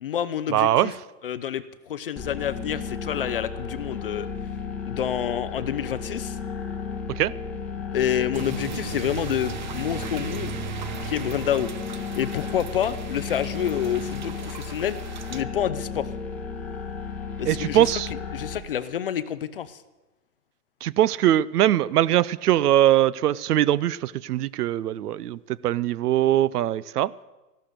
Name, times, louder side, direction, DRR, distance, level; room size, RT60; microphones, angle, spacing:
voice 1, 0.0-0.9 1.2-4.3 4.9-6.4 7.9-10.5 11.0-11.7 12.2-15.0 15.3-16.1 17.4-17.9 18.3-19.8, left 9 dB, 40° left, 14 dB, 0.5 m, -28 dB
voice 2, 0.5-0.9 7.1-7.3 17.5-18.1 20.8-27.1, right 12 dB, 70° right, 22 dB, 0.6 m, -21 dB
sound 1, 2.2-18.6, left 5 dB, 5° left, 0.9 m, -34 dB
sound 2, 8.3-15.4, right 8 dB, 30° right, 0.4 m, -37 dB
14.0 x 12.0 x 6.6 m, 1.1 s
hypercardioid pair, 155°, 48 cm